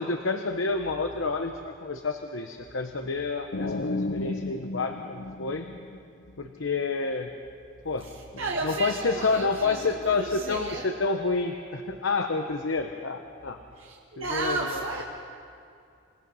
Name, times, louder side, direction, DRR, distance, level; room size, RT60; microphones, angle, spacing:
voice 1, 0.0-5.7 6.4-7.3 7.8-8.1 8.3-13.6 14.2-14.8, left 4 dB, 85° left, 5 dB, 1.0 m, -29 dB
sound 1, 3.5-6.3, left 2 dB, 60° left, 0.7 m, -33 dB
voice 2, 8.0-11.0 13.8-15.0, right 3 dB, 80° right, -2 dB, 1.7 m, -33 dB
27.5 x 18.5 x 5.6 m, 2.4 s
head